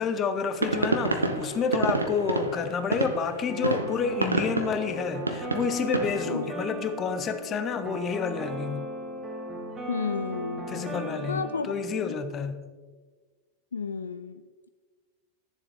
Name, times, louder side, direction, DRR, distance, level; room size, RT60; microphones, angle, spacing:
voice 1, 0.0-8.9 10.7-12.7, left 5 dB, 30° left, 9 dB, 0.7 m, -29 dB
sound 1, 0.5-6.2, right 2 dB, 80° right, 0.7 m, -29 dB
sound 2, 3.5-12.2, right 1 dB, 20° right, 1.8 m, -37 dB
voice 2, 9.9-10.8 11.3-12.2 13.7-14.7, left 5 dB, 70° left, 10 dB, 0.3 m, -33 dB
11.0 x 7.1 x 3.5 m, 1.4 s
figure-of-eight pair, 90°, 0 cm